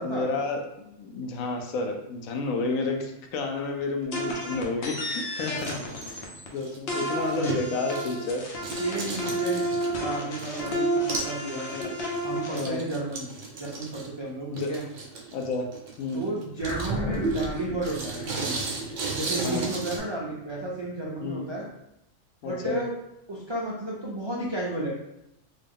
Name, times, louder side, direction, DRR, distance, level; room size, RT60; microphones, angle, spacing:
voice 1, 0.0-5.8 6.1-8.4 11.7-11.9 12.5-12.9 14.5-14.7 15.3-15.7 16.0-16.2 19.4-19.7 21.2-21.5 22.4-22.8, left 3 dB, 80° left, 3 dB, 1.0 m, -31 dB
sound 1, 4.1-6.5 6.9-12.6, right 1 dB, 55° left, 0.9 m, -31 dB
voice 2, 5.4-6.2 7.3-7.8 8.8-9.7 9.9-11.7 12.2-13.3 13.6-14.8 16.1-18.6 19.0-21.6 22.4-22.9 23.3-24.9, right 2 dB, 50° right, -5 dB, 0.3 m, -32 dB
sound 2, 5.4-8.4 8.6-10.8 11.1-11.4 11.7-20.0, right 3 dB, 70° right, 1.1 m, -36 dB
sound 3, 16.6-21.2, right 2 dB, 20° right, 1.2 m, -34 dB
3.6 x 2.3 x 3.5 m, 0.84 s
omnidirectional pair, 1.4 m